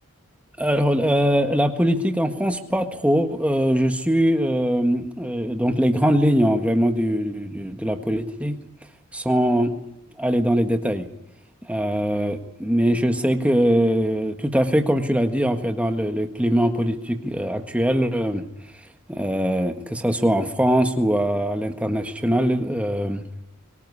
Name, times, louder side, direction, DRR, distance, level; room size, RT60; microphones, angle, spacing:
voice 1, 0.6-8.6 9.1-9.7 10.2-11.1 11.7-18.4 19.1-23.2, equal, 5° right, 6 dB, 1.6 m, -22 dB
24.5 x 18.0 x 9.7 m, 0.86 s
head